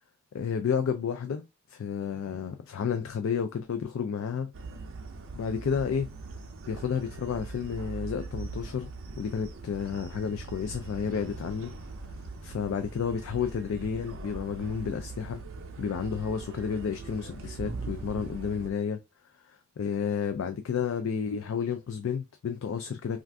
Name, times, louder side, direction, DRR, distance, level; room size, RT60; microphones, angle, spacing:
voice 1, 0.3-4.5 5.3-6.1 6.7-8.9 9.2-11.7 12.4-15.4 15.8-19.0 19.5-23.2, left 6 dB, 65° left, 0.3 m, -31 dB
sound 1, 4.5-18.7, right 3 dB, 60° right, 0.5 m, -41 dB
2.5 x 2.4 x 3.3 m
head